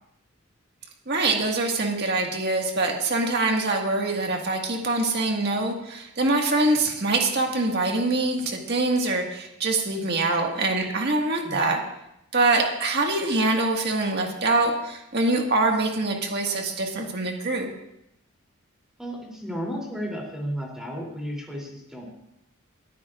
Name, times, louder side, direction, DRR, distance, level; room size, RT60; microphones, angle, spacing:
voice 1, 1.1-11.8 12.3-17.7, right 2 dB, 50° right, 1 dB, 1.8 m, -24 dB
voice 2, 19.0-22.1, equal, 5° right, -2 dB, 3.2 m, -33 dB
21.5 x 14.0 x 2.5 m, 0.83 s
head